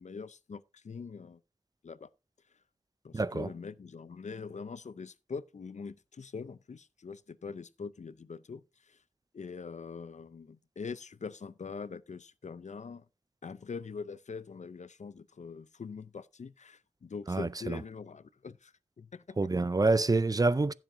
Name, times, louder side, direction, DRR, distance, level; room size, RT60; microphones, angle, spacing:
voice 1, 0.0-1.4 1.8-2.1 3.0-9.0 9.3-13.1 13.4-19.4, left 5 dB, 70° left, 0.5 m, -43 dB
voice 2, 3.1-3.5 17.3-17.8 19.4-20.7, right 3 dB, 30° right, 0.4 m, -27 dB
15.5 x 7.3 x 2.6 m
wide cardioid pair, 70°, 13 cm